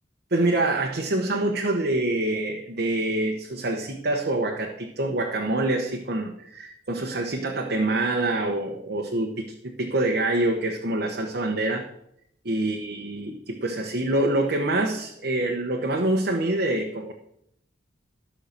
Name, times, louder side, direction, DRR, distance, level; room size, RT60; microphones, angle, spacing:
voice 1, 0.3-11.9 12.4-17.1, right 2 dB, 55° right, 1 dB, 1.1 m, -26 dB
13.0 x 5.8 x 6.7 m, 0.75 s
head